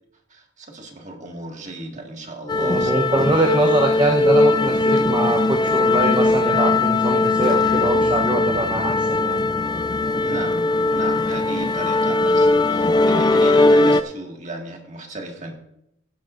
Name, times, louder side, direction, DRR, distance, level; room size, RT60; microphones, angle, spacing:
voice 1, 0.3-3.5 3.9-4.2 10.2-15.5, right 2 dB, 40° right, 2 dB, 1.7 m, -35 dB
sound 1, 2.5-14.0, left 2 dB, 20° left, 0.4 m, -19 dB
voice 2, 2.6-9.4, right 2 dB, 20° right, 2 dB, 0.8 m, -23 dB
16.0 x 11.5 x 2.5 m, 0.79 s
head